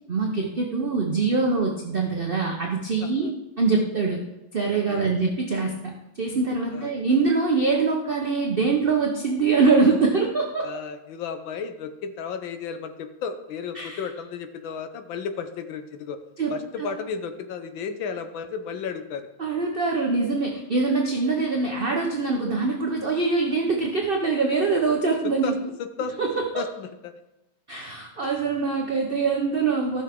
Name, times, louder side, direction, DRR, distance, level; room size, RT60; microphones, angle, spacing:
voice 1, 0.1-3.3 3.6-4.2 4.5-10.7 13.7-14.0 16.4-16.9 19.4-25.5 26.2-26.6 27.7-30.0, right 4 dB, 45° right, 0 dB, 0.7 m, -24 dB
voice 2, 3.0-3.3 4.9-5.1 6.7-6.9 10.6-16.2 16.5-19.3 25.2-26.3 26.6-27.1, left 6 dB, 70° left, 8 dB, 1.6 m, -33 dB
14.5 x 6.3 x 3.6 m, 0.96 s
omnidirectional pair, 2.3 m